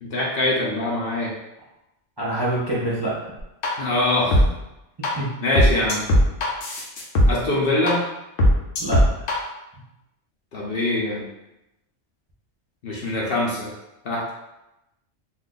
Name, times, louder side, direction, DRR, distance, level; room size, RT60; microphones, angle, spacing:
voice 1, 0.0-1.3 3.8-4.4 5.4-6.1 7.3-8.0 10.5-11.3 12.8-13.7 14.0-14.3, left 1 dB, 60° left, -4 dB, 0.7 m, -23 dB
voice 2, 2.2-3.1 5.2-5.3 8.8-9.0, right 1 dB, 30° right, -8 dB, 0.5 m, -25 dB
sound 1, 3.4-3.7 4.3-4.4 5.0-5.1 5.6-7.3 7.9-8.0 8.4-9.3, equal, 85° left, 1.0 m, -17 dB
2.5 x 2.4 x 3.7 m, 0.93 s
omnidirectional pair, 1.3 m